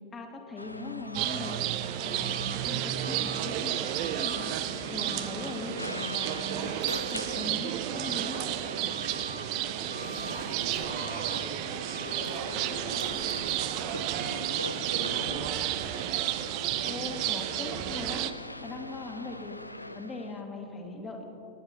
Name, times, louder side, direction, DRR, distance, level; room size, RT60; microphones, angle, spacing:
voice 1, 0.1-1.6 2.0-8.4 16.8-19.6 19.9-21.2, left 3 dB, 20° left, 1 dB, 1.8 m, -40 dB
sound 1, 0.6-20.4, left 1 dB, 85° left, 0.3 m, -42 dB
sound 2, 1.1-18.3, right 13 dB, 45° right, 0.5 m, -32 dB
sound 3, 6.7-11.1 11.5-14.1, left 5 dB, 45° left, 2.9 m, -53 dB
voice 2, 10.0-11.7 12.0-15.7, right 1 dB, 80° right, -3 dB, 1.8 m, -41 dB
23.0 x 10.5 x 2.9 m, 2.8 s
figure-of-eight pair, 90°, 0 cm